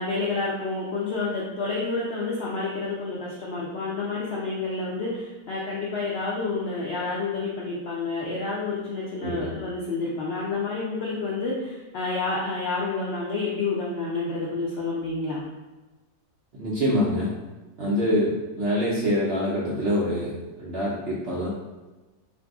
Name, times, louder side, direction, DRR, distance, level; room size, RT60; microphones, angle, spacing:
voice 1, 0.0-15.4 18.0-18.1, left 3 dB, 70° left, -5 dB, 0.6 m, -29 dB
voice 2, 16.6-17.3 17.8-21.5, equal, 60° right, -6 dB, 0.6 m, -25 dB
2.6 x 2.6 x 3.4 m, 1.2 s
omnidirectional pair, 1.6 m